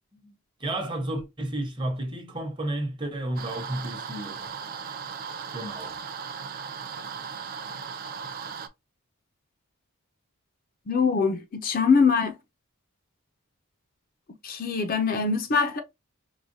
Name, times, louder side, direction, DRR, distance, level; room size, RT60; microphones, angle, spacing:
voice 1, 0.6-4.5 5.5-5.9, right 1 dB, 20° right, 0.8 m, -32 dB
sound 1, 3.4-8.7, right 6 dB, 40° right, 0.4 m, -37 dB
voice 2, 10.9-12.3 14.4-15.8, left 5 dB, 40° left, 0.5 m, -23 dB
4.7 x 2.2 x 2.6 m
head